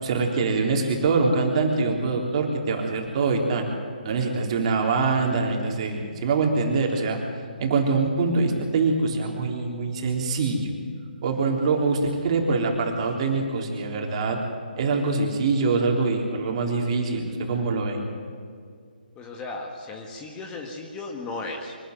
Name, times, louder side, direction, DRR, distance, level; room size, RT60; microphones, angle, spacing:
voice 1, 0.0-3.7 4.0-7.2 7.6-10.8 11.2-14.4 14.8-18.0, right 4 dB, 35° right, 2 dB, 3.7 m, -24 dB
voice 2, 19.2-21.8, left 3 dB, 15° left, 2 dB, 1.8 m, -35 dB
24.0 x 12.0 x 9.5 m, 2.2 s
figure-of-eight pair, 145°, 5 cm